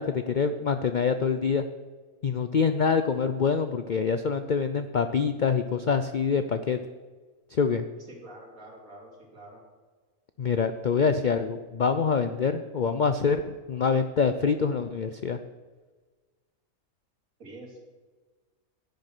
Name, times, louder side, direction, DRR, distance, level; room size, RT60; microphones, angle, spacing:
voice 1, 0.0-1.6 2.2-6.8 7.5-7.8 10.4-15.4, left 5 dB, 80° left, 9 dB, 0.4 m, -25 dB
voice 2, 8.1-9.6 17.4-17.8, right 1 dB, 65° right, -1 dB, 3.1 m, -46 dB
10.5 x 9.5 x 6.1 m, 1.4 s
omnidirectional pair, 1.5 m